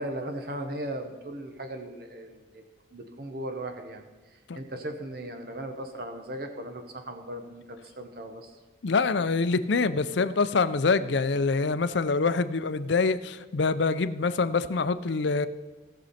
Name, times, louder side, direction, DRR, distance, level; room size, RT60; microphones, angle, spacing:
voice 1, 0.0-2.6 2.9-4.0 4.3-8.6, right 1 dB, 50° right, 5 dB, 1.1 m, -37 dB
voice 2, 8.8-15.5, left 4 dB, 70° left, 12 dB, 0.5 m, -25 dB
18.0 x 6.3 x 4.3 m, 1.3 s
head